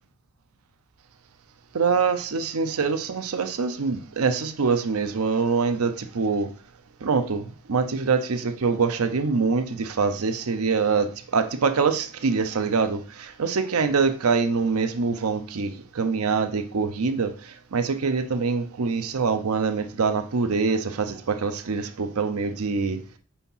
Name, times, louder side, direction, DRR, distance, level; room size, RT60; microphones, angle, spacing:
voice 1, 1.7-6.5 7.0-23.0, right 4 dB, 85° right, 0.6 m, -24 dB
4.6 x 4.3 x 5.5 m
head